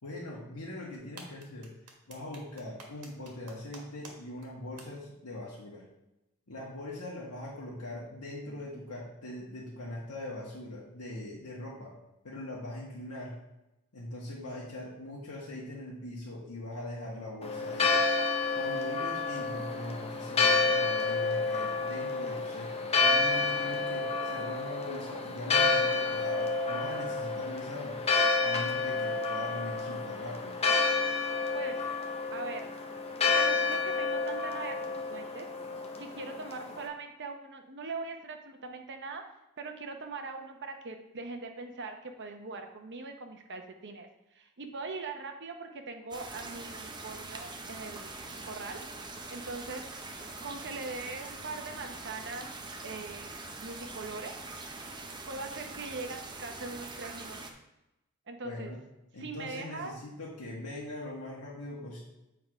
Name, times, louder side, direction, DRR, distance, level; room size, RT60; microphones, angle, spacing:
voice 1, 0.0-1.7 2.1-5.8 6.5-11.9 12.2-13.3 13.9-18.0 18.5-28.0 28.4-30.6 58.4-58.8 59.1-62.0, left 1 dB, 90° left, -5 dB, 1.5 m, -41 dB
sound 1, 0.9-4.1 4.4-4.5 4.8-4.9, right 4 dB, 80° right, 1.4 m, -48 dB
Church bell, 17.4-36.9, left 4 dB, 30° left, 0.7 m, -29 dB
voice 2, 32.3-32.7 33.3-35.5 36.0-39.2 39.6-44.1 44.3-48.1 48.4-48.8 49.3-49.9 50.4-52.5 52.8-54.3 55.3-57.5 58.3-58.7 59.2-59.9, right 3 dB, 55° right, 5 dB, 0.9 m, -41 dB
sound 2, 46.1-57.5, right 3 dB, 20° right, 0.7 m, -43 dB
7.8 x 3.8 x 4.9 m, 0.93 s
head